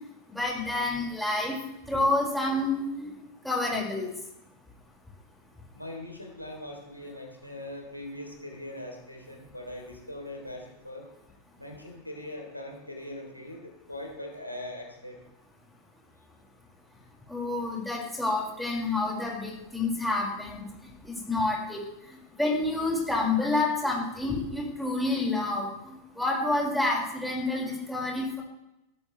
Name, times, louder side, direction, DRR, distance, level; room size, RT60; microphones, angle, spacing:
voice 1, 0.3-1.6 1.9-3.1 3.4-4.1 17.3-20.6 21.0-21.8 22.1-28.4, left 2 dB, ahead, -3 dB, 5.4 m, -28 dB
voice 2, 5.7-11.1 11.6-15.2, left 1 dB, 90° left, 1 dB, 3.4 m, -41 dB
21.5 x 14.0 x 3.3 m, 0.86 s
figure-of-eight pair, 90°, 0 cm